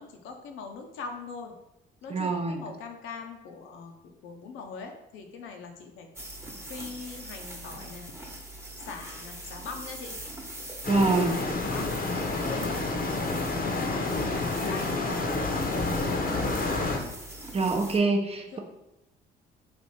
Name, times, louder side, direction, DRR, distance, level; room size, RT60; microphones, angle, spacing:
voice 1, 0.0-1.5 2.0-6.1 6.7-8.1 8.9-10.2 10.9-11.9 12.5-13.4 13.7-15.9 18.3-18.6, left 5 dB, 75° left, 4 dB, 0.7 m, -42 dB
voice 2, 2.1-2.6 10.9-11.4 17.5-18.6, right 3 dB, 30° right, 3 dB, 0.7 m, -25 dB
sound 1, 6.1-18.0, right 1 dB, 10° right, 1.0 m, -42 dB
sound 2, 10.8-17.0, left 3 dB, 45° left, 0.8 m, -29 dB
3.3 x 2.5 x 4.1 m, 0.90 s
supercardioid pair, 60°, 21 cm